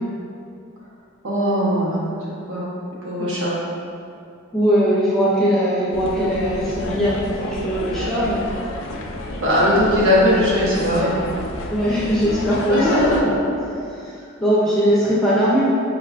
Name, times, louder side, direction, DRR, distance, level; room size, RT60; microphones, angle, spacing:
voice 1, 1.2-2.1 2.5-2.7 3.0-3.6 9.4-11.2 12.7-13.6 14.2-14.3, equal, 70° right, -6 dB, 0.8 m, -19 dB
voice 2, 4.5-8.5 11.7-12.9 13.2-13.3 13.9-14.1 14.4-15.6, equal, ahead, -8 dB, 0.4 m, -20 dB
sound 1, 5.9-13.2, left 2 dB, 65° left, 0.3 m, -30 dB
5.0 x 2.3 x 2.3 m, 2.5 s
head